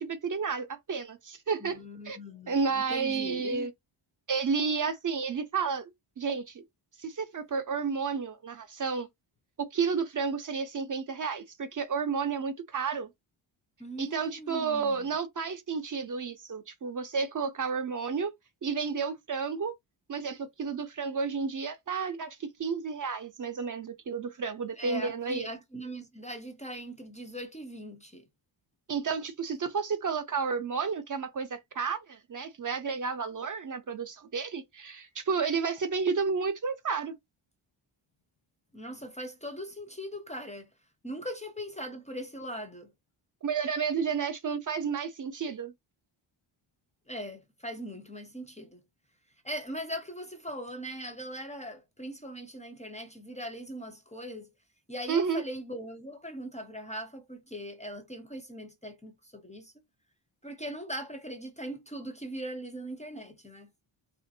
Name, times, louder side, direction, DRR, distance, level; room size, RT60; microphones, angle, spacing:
voice 1, 0.0-1.8 2.0-2.2 2.5-3.7 4.3-5.9 6.2-6.6 7.0-9.1 9.6-13.1 14.0-18.3 18.6-19.7 20.1-25.5 28.9-37.1 43.4-45.7 55.1-55.4, right 5 dB, 40° right, 0.5 m, -31 dB
voice 2, 1.6-3.7 13.8-15.1 24.8-28.2 38.7-40.7 41.0-42.9 47.1-48.8 49.4-54.5 54.9-59.7 60.4-63.7, equal, 15° left, 0.5 m, -40 dB
3.5 x 2.5 x 2.6 m
wide cardioid pair, 135°, 48 cm